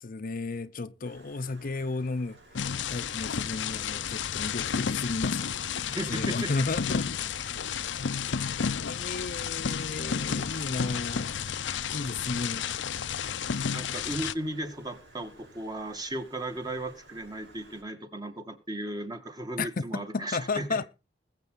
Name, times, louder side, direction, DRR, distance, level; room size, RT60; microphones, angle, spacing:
voice 1, 0.0-2.4 2.9-5.6 6.0-7.5 8.9-11.3 11.9-12.7 19.6-20.8, left 3 dB, 50° left, 0.7 m, -33 dB
Stream, 1.0-17.8, right 1 dB, 85° right, 5.8 m, -55 dB
sound 1, 2.5-14.3, left 7 dB, 90° left, 0.6 m, -32 dB
voice 2, 5.9-6.5 13.7-20.8, right 1 dB, 20° right, 1.8 m, -36 dB
20.5 x 7.6 x 3.8 m
head